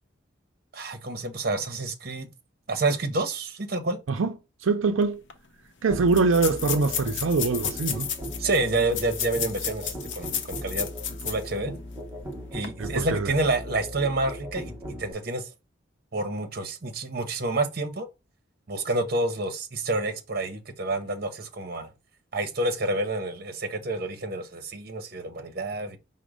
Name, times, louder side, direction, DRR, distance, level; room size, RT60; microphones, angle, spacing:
voice 1, 0.7-2.3 2.7-4.0 8.4-10.9 11.2-11.7 12.5-14.7 15.0-15.5 16.1-18.1 18.7-21.9 22.3-26.0, right 2 dB, 50° right, 0.8 m, -28 dB
voice 2, 4.6-5.2 5.8-8.1 12.8-13.3, right 4 dB, 85° right, 0.5 m, -23 dB
sound 1, 5.0-5.1 5.3-5.4 6.1-11.5 11.9-12.0 12.5-12.7, left 8 dB, 65° left, 0.7 m, -32 dB
Musical instrument, 5.9-15.1, equal, 10° right, 0.7 m, -38 dB
5.1 x 2.1 x 4.7 m
head